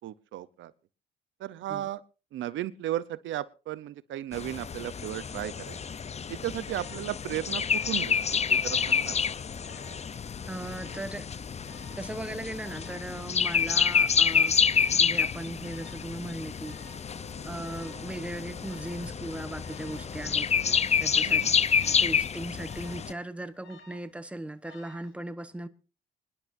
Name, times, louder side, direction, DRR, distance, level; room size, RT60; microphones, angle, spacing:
voice 1, 0.0-0.7 1.4-2.0 2.3-5.8 6.3-9.1 21.2-21.5, right 13 dB, 75° right, 0.7 m, -35 dB
sound 1, 4.3-23.1, left 6 dB, 35° left, 0.6 m, -28 dB
Alarm, 6.6-7.1 7.6-8.1 8.4-9.1 9.6-10.0 10.6-11.1 11.6-12.1 12.6-13.1 13.6-14.1 14.6-15.1 15.6-16.1 16.6-17.1 17.6-18.1 18.6-19.1 19.6-20.1 20.6-21.1 21.6-22.1 22.6-23.1 23.6-24.1 24.6-25.1, equal, 70° left, 5.1 m, -53 dB
voice 2, 10.5-11.3 12.0-14.6 14.9-16.8 17.4-20.5 21.0-21.4 22.0-25.7, right 1 dB, 5° right, 1.1 m, -38 dB
Organ, 17.0-21.5, left 1 dB, 20° left, 5.6 m, -50 dB
25.5 x 11.0 x 2.6 m
cardioid pair, 90°, 20 cm